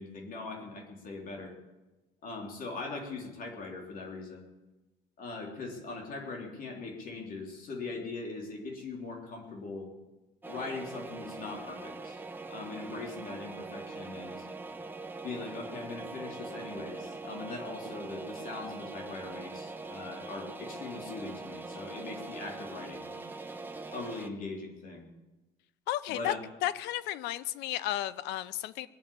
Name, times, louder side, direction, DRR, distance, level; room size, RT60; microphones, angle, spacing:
voice 1, 0.0-1.6 2.2-4.5 5.2-9.9 10.5-12.2 12.5-14.5 15.2-23.1 23.9-25.1 26.1-26.4, left 3 dB, 55° left, 0 dB, 3.5 m, -41 dB
sound 1, 10.4-24.3, right 3 dB, 10° right, 1.1 m, -42 dB
voice 2, 25.9-26.3 26.6-28.9, left 13 dB, 90° left, 16 dB, 0.7 m, -33 dB
21.0 x 7.3 x 8.6 m, 1.1 s
cardioid pair, 110°, 17 cm